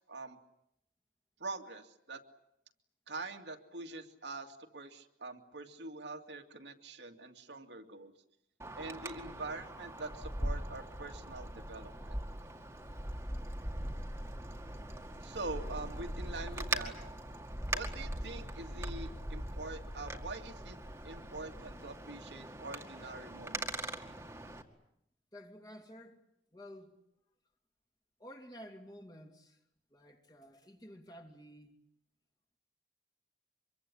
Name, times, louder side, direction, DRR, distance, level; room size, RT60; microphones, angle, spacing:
voice 1, 0.1-0.4 1.4-2.2 3.1-8.1 8.8-12.2 15.2-16.9 17.7-20.8 21.0-24.0, right 3 dB, 75° right, 2.4 m, -44 dB
Wind, 8.6-24.6, right 1 dB, 15° right, 2.1 m, -41 dB
voice 2, 13.1-13.5 25.3-27.0 28.2-29.6 29.9-31.7, equal, 20° left, 2.8 m, -52 dB
26.0 x 23.0 x 10.0 m
head